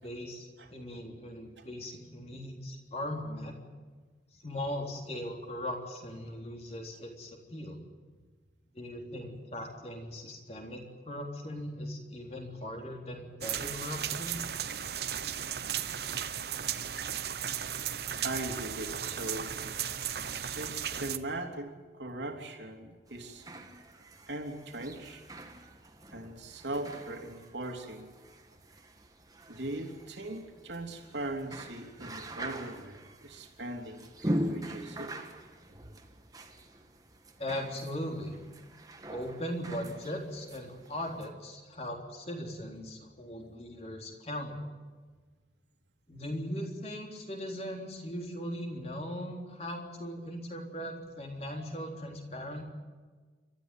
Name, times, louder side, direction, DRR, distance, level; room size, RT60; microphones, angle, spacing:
voice 1, 0.0-3.6 4.4-7.8 8.7-14.4 37.4-38.4 39.1-44.7 46.1-52.6, left 1 dB, 35° left, 2 dB, 3.6 m, -39 dB
sound 1, 13.4-21.2, right 9 dB, 60° right, 1.0 m, -35 dB
voice 2, 18.2-19.5 20.2-23.5 24.3-25.2 26.1-28.1 29.5-35.1 35.7-35.8, right 1 dB, 80° right, 3 dB, 3.2 m, -40 dB
sound 2, 23.1-41.3, equal, 20° right, 1.6 m, -42 dB
29.0 x 13.5 x 9.2 m, 1.4 s
head